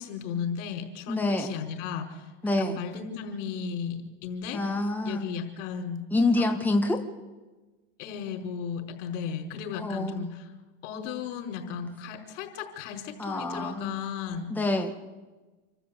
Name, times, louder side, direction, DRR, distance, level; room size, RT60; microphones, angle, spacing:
voice 1, 0.0-2.3 2.6-4.6 5.0-6.0 6.4-6.5 8.0-10.5 10.8-14.5, left 7 dB, 70° left, 2 dB, 4.9 m, -35 dB
voice 2, 1.1-1.5 2.4-2.8 4.5-5.3 6.1-7.0 9.8-10.3 13.2-14.0 14.5-14.9, left 2 dB, 5° left, 3 dB, 1.8 m, -27 dB
27.5 x 13.0 x 8.6 m, 1.2 s
supercardioid pair, 105°, 37 cm